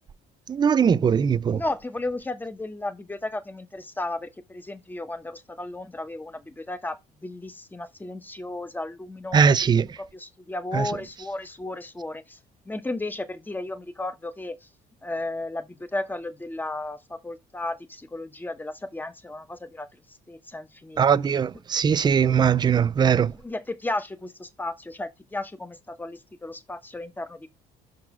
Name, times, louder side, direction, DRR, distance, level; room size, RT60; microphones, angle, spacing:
voice 1, 0.5-1.6 9.3-9.8 10.7-10.9 21.0-23.3, right 7 dB, 25° right, 0.4 m, -20 dB
voice 2, 1.5-12.4 12.7-14.6 15.0-19.9 20.3-21.2 23.4-27.5, left 2 dB, 10° left, 0.9 m, -34 dB
5.9 x 3.8 x 6.0 m
cardioid pair, 110°, 17 cm